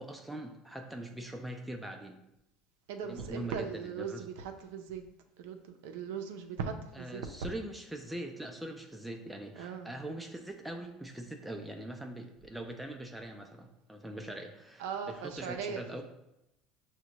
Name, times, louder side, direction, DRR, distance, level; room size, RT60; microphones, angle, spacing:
voice 1, 0.0-2.2 3.0-4.2 6.9-16.0, right 1 dB, 5° right, 3 dB, 0.4 m, -42 dB
voice 2, 2.9-5.0 5.4-7.5 9.6-9.9 14.8-16.0, right 6 dB, 85° right, 5 dB, 0.5 m, -39 dB
6.1 x 2.2 x 2.9 m, 0.87 s
supercardioid pair, 110°, 0 cm